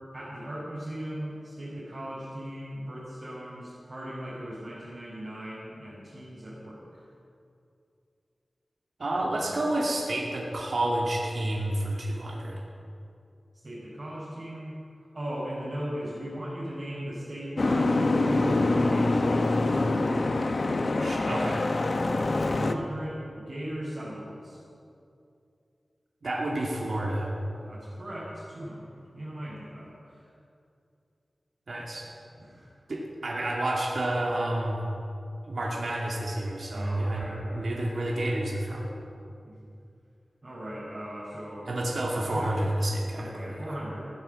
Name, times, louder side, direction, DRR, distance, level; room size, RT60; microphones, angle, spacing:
voice 1, 0.1-6.8 13.6-14.7 15.1-20.1 22.1-24.6 27.5-30.3 32.4-32.7 36.7-37.8 39.4-39.5 40.4-41.7 42.2-42.6 43.2-44.1, equal, 40° right, -10 dB, 4.9 m, -38 dB
voice 2, 9.0-12.6 21.0-21.6 26.2-27.3 31.7-32.1 32.9-34.8 35.4-38.9 41.7-43.8, right 1 dB, 65° right, -3 dB, 2.4 m, -29 dB
Boat Water vehicle, 17.6-22.7, left 2 dB, 50° left, 0.9 m, -25 dB
16.5 x 9.6 x 7.7 m, 2.5 s
wide cardioid pair, 100°, 0 cm